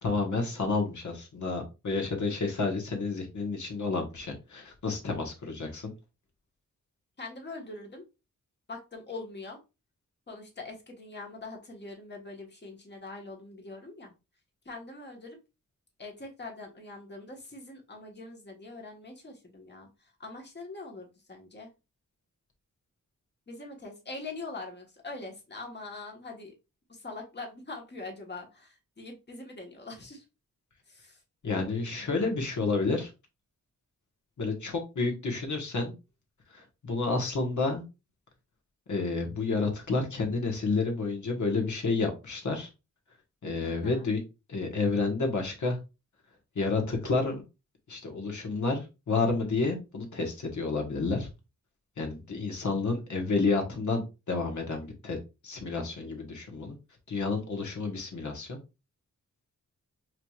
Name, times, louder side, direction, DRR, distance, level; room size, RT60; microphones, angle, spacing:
voice 1, 0.0-5.9 31.4-33.1 34.4-35.9 36.5-37.8 38.9-42.7 43.4-44.2 44.5-45.8 46.5-47.4 47.9-51.3 52.0-55.2 55.4-56.7 57.1-58.6, left 3 dB, 60° left, 2 dB, 1.4 m, -30 dB
voice 2, 7.2-8.0 8.7-9.6 10.3-14.1 14.6-15.4 16.0-21.7 23.5-26.5 27.0-30.2 30.9-31.2 43.6-44.1, left 3 dB, 30° left, 1 dB, 1.4 m, -43 dB
4.8 x 3.1 x 2.4 m, 0.27 s
cardioid pair, 75°, 33 cm